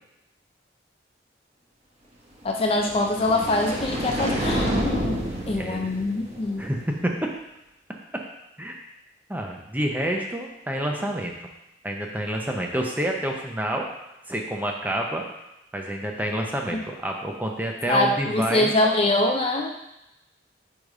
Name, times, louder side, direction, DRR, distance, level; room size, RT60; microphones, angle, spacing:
voice 1, 2.4-5.2 5.5-6.6 17.9-19.7, left 2 dB, 30° left, 2 dB, 0.4 m, -24 dB
sound 1, 2.6-6.9, right 1 dB, 35° right, 1.1 m, -29 dB
voice 2, 5.6-6.0 6.6-7.3 8.6-8.8 9.3-11.3 11.8-13.9 14.3-15.2 15.7-18.7, right 1 dB, 10° right, 1 dB, 0.6 m, -28 dB
4.9 x 3.9 x 4.8 m, 0.89 s
head